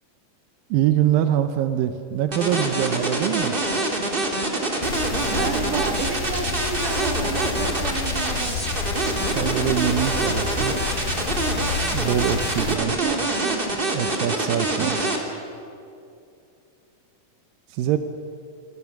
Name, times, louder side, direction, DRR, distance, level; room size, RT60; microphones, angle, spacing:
voice 1, 0.7-3.6 9.3-10.8 11.9-13.0 13.9-14.9 17.7-18.0, right 11 dB, 90° right, 8 dB, 2.6 m, -24 dB
sound 1, 2.3-15.2, right 2 dB, 15° right, 2.2 m, -25 dB
sound 2, 4.8-12.8, left 4 dB, 65° left, 3.6 m, -29 dB
voice 2, 5.3-8.6 12.6-13.2 13.4-13.6 14.8-15.0, right 6 dB, 70° right, 5 dB, 3.3 m, -31 dB
28.0 x 23.0 x 6.0 m, 2.6 s
omnidirectional pair, 3.9 m